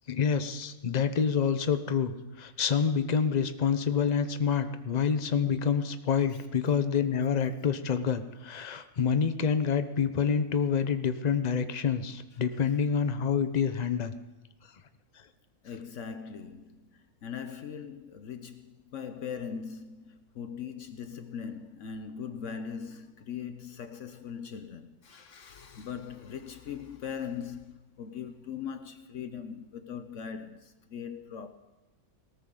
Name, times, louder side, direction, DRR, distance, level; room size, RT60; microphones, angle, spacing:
voice 1, 0.1-14.1, left 6 dB, 35° left, 0.8 m, -27 dB
voice 2, 12.4-12.9 15.6-31.5, left 7 dB, 65° left, 1.1 m, -40 dB
20.0 x 18.5 x 3.9 m
omnidirectional pair, 1.4 m